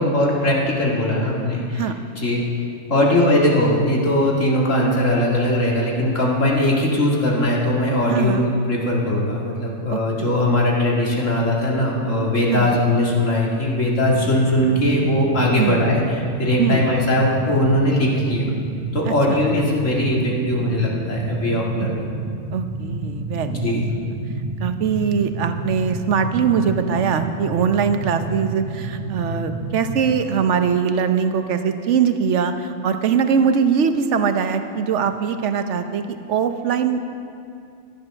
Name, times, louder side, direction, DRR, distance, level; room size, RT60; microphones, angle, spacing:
voice 1, 0.0-1.9 2.2-2.5 2.9-18.4 18.9-22.0 23.5-23.9, left 1 dB, 75° left, -3 dB, 2.5 m, -20 dB
voice 2, 8.1-8.5 9.9-10.3 12.5-12.8 15.6-15.8 16.6-16.8 19.1-19.4 21.8-21.9 22.5-23.8 24.6-37.1, right 6 dB, 70° right, 8 dB, 1.1 m, -22 dB
sound 1, 14.1-30.1, right 3 dB, 35° right, 0.9 m, -29 dB
11.5 x 11.0 x 6.4 m, 2.4 s
omnidirectional pair, 1.3 m